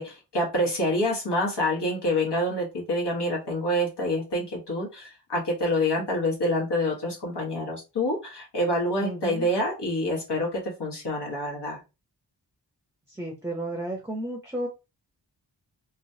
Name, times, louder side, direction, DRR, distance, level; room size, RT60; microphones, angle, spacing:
voice 1, 0.0-11.8, left 1 dB, 75° left, -2 dB, 1.3 m, -27 dB
voice 2, 9.0-9.5 13.1-14.7, right 1 dB, 5° right, 1 dB, 0.6 m, -33 dB
3.1 x 2.2 x 2.7 m, 0.27 s
wide cardioid pair, 55°, 42 cm